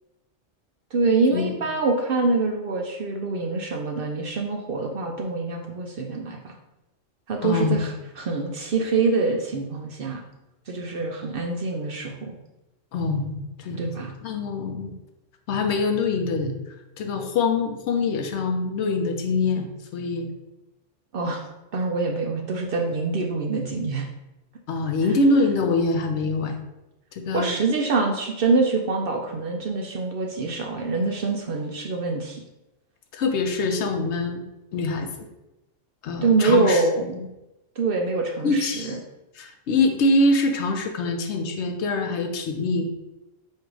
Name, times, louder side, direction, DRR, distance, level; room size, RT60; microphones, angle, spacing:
voice 1, 0.9-6.6 7.3-10.2 10.7-12.4 13.8-14.1 21.1-21.4 21.7-24.1 27.3-32.4 36.2-37.2 37.8-39.0, right 3 dB, 60° right, 1 dB, 0.6 m, -25 dB
voice 2, 7.4-7.8 12.9-14.9 15.5-16.5 17.0-20.3 24.7-26.6 27.1-27.5 33.1-34.4 34.7-35.3 36.0-36.8 37.1-37.3 38.4-39.0 39.4-43.0, left 3 dB, 70° left, 5 dB, 0.8 m, -24 dB
4.4 x 2.5 x 4.7 m, 0.97 s
omnidirectional pair, 1.3 m